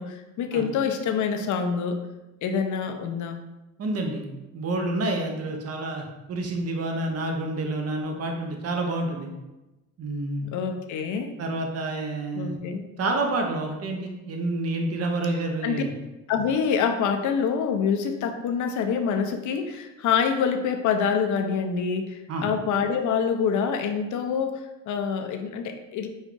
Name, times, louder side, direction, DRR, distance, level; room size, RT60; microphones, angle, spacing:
voice 1, 0.0-2.0 2.4-3.4 10.4-11.3 12.3-12.9 15.6-15.8 16.3-26.1, left 6 dB, 75° left, 6 dB, 0.6 m, -26 dB
voice 2, 3.8-4.2 4.5-9.3 10.0-10.5 11.4-12.6 13.0-15.9 22.3-22.5, right 2 dB, 55° right, 2 dB, 0.8 m, -28 dB
5.1 x 2.4 x 3.7 m, 1.0 s
cardioid pair, 90°, 30 cm